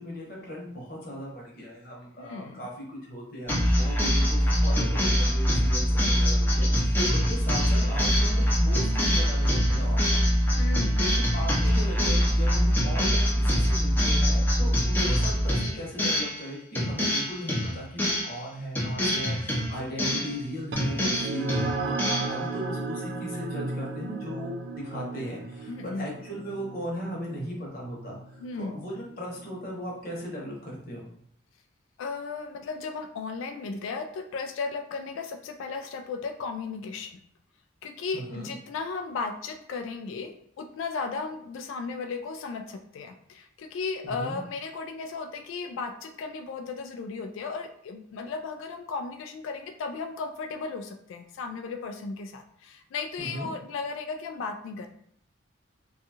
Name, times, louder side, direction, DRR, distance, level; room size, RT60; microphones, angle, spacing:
voice 1, 0.0-10.3 11.3-24.5 24.8-31.1 38.1-38.5 44.0-44.4 53.2-53.5, equal, 45° left, -3 dB, 0.9 m, -37 dB
voice 2, 2.2-2.6 10.5-11.0 11.7-11.9 25.7-26.1 28.4-28.8 32.0-37.1 37.8-54.9, left 4 dB, 85° left, 6 dB, 0.3 m, -35 dB
sound 1, 3.5-16.4 16.7-18.4 18.7-20.4 20.8-22.4, equal, 10° left, 0.5 m, -24 dB
sound 2, 20.7-29.6, right 3 dB, 60° right, 0.3 m, -35 dB
2.6 x 2.3 x 2.7 m, 0.65 s
head